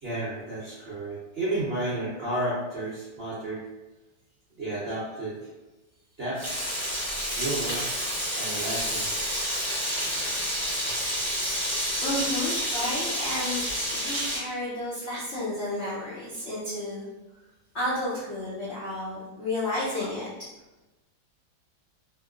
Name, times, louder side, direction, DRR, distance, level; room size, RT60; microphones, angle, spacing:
voice 1, 0.0-3.6 4.6-5.4 6.2-6.4 7.4-7.8 8.3-9.3, right 1 dB, 75° right, -8 dB, 0.5 m, -32 dB
Frying (food), 6.4-14.4, equal, 15° left, 0.5 m, -29 dB
voice 2, 9.9-11.1 12.0-13.6 13.9-17.1 17.7-20.3, left 1 dB, 85° left, -9 dB, 0.6 m, -32 dB
3.0 x 2.8 x 2.4 m, 1.1 s
omnidirectional pair, 2.2 m